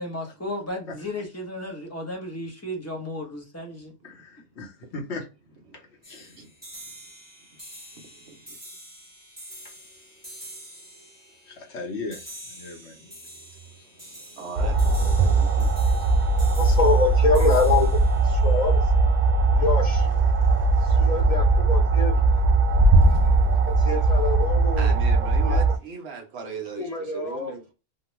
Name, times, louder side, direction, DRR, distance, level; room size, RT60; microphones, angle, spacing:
voice 1, 0.0-3.9, left 1 dB, 15° left, 0.6 m, -34 dB
voice 2, 4.0-5.3 5.7-6.3 9.6-10.6 10.9-11.1 11.5-12.2 12.5-13.1 13.7-14.4, left 3 dB, 60° left, 1.1 m, -39 dB
sound 1, 6.0-19.5, right 1 dB, 10° right, 1.2 m, -46 dB
voice 3, 6.2-6.5 7.9-8.6 14.3-15.7 20.3-21.2 22.2-27.7, right 5 dB, 60° right, 0.9 m, -41 dB
sound 2, 14.6-25.8, right 3 dB, 90° right, 0.4 m, -20 dB
voice 4, 16.6-18.9 19.6-20.1 20.8-22.1 23.7-24.9 25.4-25.7 26.8-27.5, left 4 dB, 85° left, 0.3 m, -25 dB
2.9 x 2.2 x 2.9 m
omnidirectional pair, 1.3 m